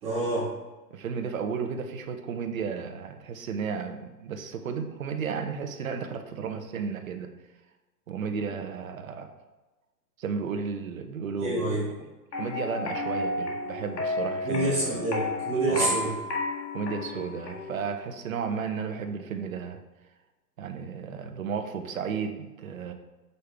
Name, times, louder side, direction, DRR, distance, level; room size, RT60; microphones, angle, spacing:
voice 1, 0.0-0.4 11.4-11.8 14.4-16.1, right 2 dB, 10° right, -10 dB, 1.6 m, -27 dB
voice 2, 0.9-7.3 8.1-9.3 10.2-12.1 12.4-15.0 15.7-16.0 16.7-19.8 20.6-22.9, right 6 dB, 55° right, 6 dB, 0.9 m, -33 dB
sound 1, 12.3-17.9, left 2 dB, 70° left, 1.8 m, -32 dB
6.6 x 5.5 x 3.4 m, 1.2 s
hypercardioid pair, 170°, 50 cm